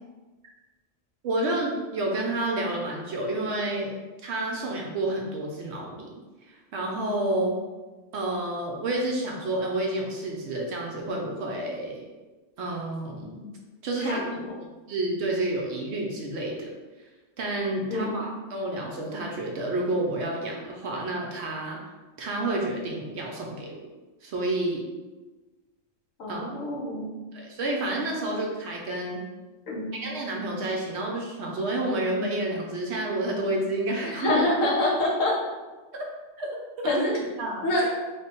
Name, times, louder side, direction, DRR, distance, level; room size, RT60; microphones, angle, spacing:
voice 1, 1.2-3.9 4.2-6.2 6.5-7.6 8.1-12.1 12.6-13.5 13.8-14.3 14.9-16.7 17.4-21.8 22.2-23.8 24.2-24.8 26.3-26.4 27.3-29.2 29.9-34.4 35.9-36.1 36.4-36.6 36.8-37.0 37.4-37.6, right 1 dB, 65° right, -1 dB, 0.8 m, -29 dB
voice 2, 14.0-14.5 17.9-18.3 26.2-27.1 29.7-29.9 34.0-35.3 36.8-37.1 37.6-37.9, left 1 dB, 75° left, -3 dB, 1.2 m, -26 dB
3.2 x 2.2 x 4.2 m, 1.2 s
omnidirectional pair, 1.4 m